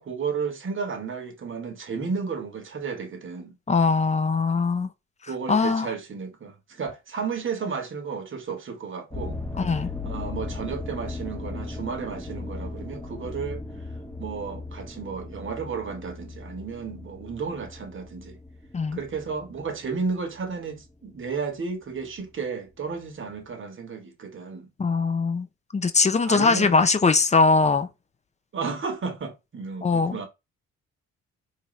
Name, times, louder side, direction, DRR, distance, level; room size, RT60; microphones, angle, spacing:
voice 1, 0.0-3.5 5.3-9.4 10.0-13.6 14.2-18.4 18.9-24.7 26.2-26.7 28.5-30.3, right 5 dB, 40° right, 1.1 m, -33 dB
voice 2, 3.7-4.9 5.5-5.9 9.6-9.9 18.7-19.0 24.8-25.5 25.7-27.9 29.8-30.2, left 4 dB, 25° left, 0.5 m, -21 dB
sound 1, 9.1-21.4 21.9-22.3 22.9-23.0 23.3-23.4, left 3 dB, 5° left, 1.0 m, -37 dB
4.5 x 2.5 x 3.1 m
cardioid pair, 90°, 30 cm